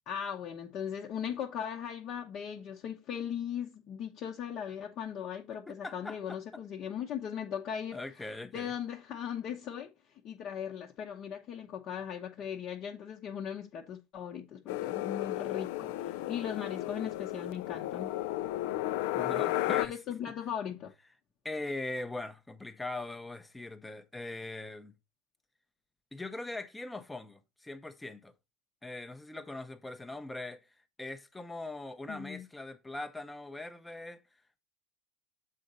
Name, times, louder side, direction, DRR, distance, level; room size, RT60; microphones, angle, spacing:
voice 1, 0.1-9.9 10.2-18.1 19.7-20.9 32.1-32.5, left 8 dB, 40° left, 0.9 m, -38 dB
voice 2, 5.7-6.6 7.9-8.7 19.1-19.9 21.4-24.9 26.1-28.3 28.8-30.6 31.0-34.2, left 2 dB, 5° left, 0.7 m, -41 dB
sound 1, 14.7-19.9, left 15 dB, 75° left, 0.3 m, -33 dB
7.6 x 3.9 x 5.4 m
cardioid pair, 165°, 0 cm